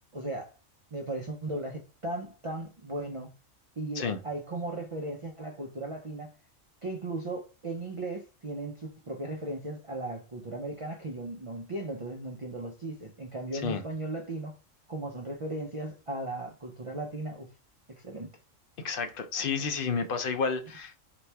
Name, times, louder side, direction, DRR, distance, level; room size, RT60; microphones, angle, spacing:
voice 1, 0.1-0.5 0.9-3.3 3.8-6.3 6.8-14.6 14.9-17.5 18.0-18.3, right 2 dB, 45° right, 0.4 m, -37 dB
voice 2, 18.8-21.0, left 5 dB, 55° left, 0.7 m, -31 dB
4.2 x 3.0 x 3.3 m
omnidirectional pair, 1.4 m